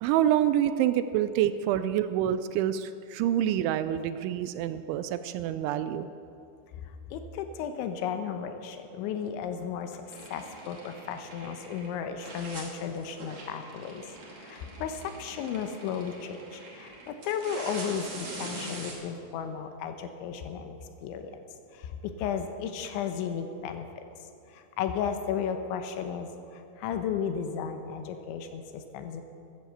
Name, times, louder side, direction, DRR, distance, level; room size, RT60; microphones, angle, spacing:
voice 1, 0.0-6.1, right 11 dB, 85° right, 12 dB, 2.8 m, -27 dB
voice 2, 7.1-10.0 10.3-14.0 14.4-21.4 21.7-23.9 24.5-29.2, left 7 dB, 80° left, 7 dB, 3.2 m, -34 dB
sound 1, 10.1-11.9 12.2-18.9, right 2 dB, 40° right, 2.6 m, -43 dB
14.5 x 11.5 x 7.4 m, 2.5 s
omnidirectional pair, 5.5 m